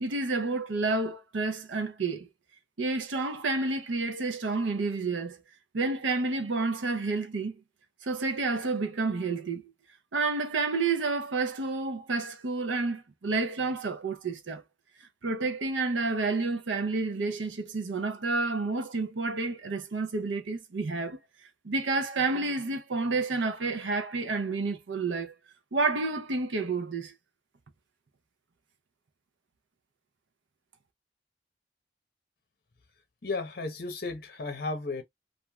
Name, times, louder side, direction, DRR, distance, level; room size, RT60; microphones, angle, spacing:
voice 1, 0.0-2.3 2.8-5.4 5.7-7.6 8.0-9.6 10.1-14.6 15.2-21.2 21.6-25.3 25.7-27.1, right 3 dB, 90° right, 0.6 m, -30 dB
voice 2, 33.2-35.0, left 3 dB, 55° left, 0.9 m, -34 dB
3.2 x 2.5 x 2.3 m
head